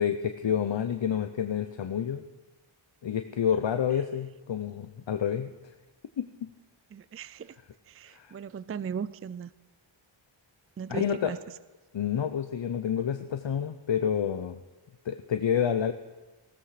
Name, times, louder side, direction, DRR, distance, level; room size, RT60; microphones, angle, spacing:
voice 1, 0.0-2.2 3.0-5.5 6.2-6.5 8.1-8.3 10.9-11.4 11.9-14.6 15.1-15.9, left 8 dB, 60° left, 9 dB, 0.8 m, -29 dB
voice 2, 6.9-7.5 8.0-9.5 10.8-11.4, right 7 dB, 30° right, 18 dB, 0.4 m, -37 dB
16.0 x 13.5 x 4.9 m, 1.2 s
cardioid pair, 45°, 50 cm